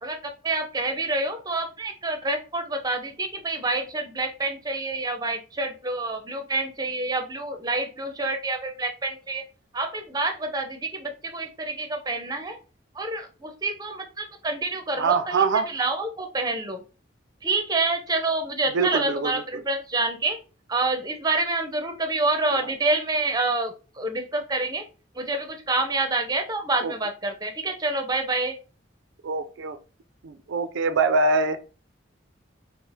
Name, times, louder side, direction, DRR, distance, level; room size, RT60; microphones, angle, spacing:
voice 1, 0.0-9.4 9.7-12.6 12.9-16.8 17.4-20.4 20.7-24.8 25.2-28.6, right 2 dB, 20° right, 6 dB, 0.6 m, -27 dB
voice 2, 15.0-15.7 18.7-19.6 22.6-22.7 26.8-26.9 29.2-29.8 30.2-31.6, right 4 dB, 75° right, 10 dB, 0.4 m, -24 dB
4.3 x 2.0 x 3.4 m, 0.35 s
head